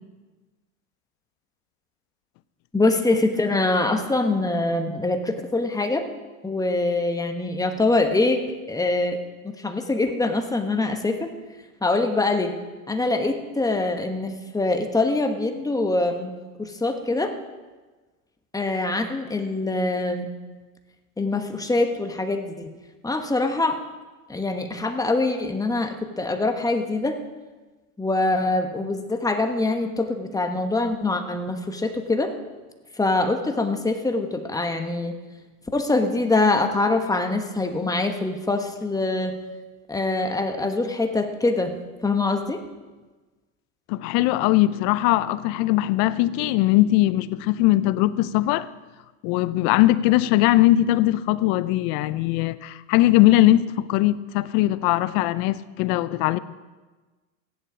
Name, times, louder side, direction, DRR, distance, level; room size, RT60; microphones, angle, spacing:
voice 1, 2.7-6.1 6.4-9.2 9.4-11.3 11.8-12.5 12.9-17.3 18.5-20.3 21.2-22.8 23.0-23.8 24.3-27.2 28.0-32.3 32.9-35.1 35.7-39.4 39.9-41.7 42.0-42.6, left 2 dB, 10° left, 1.3 m, -24 dB
voice 2, 43.9-48.7 49.2-56.4, left 16 dB, 55° left, 0.7 m, -20 dB
15.5 x 10.5 x 5.0 m
supercardioid pair, 110°, 43 cm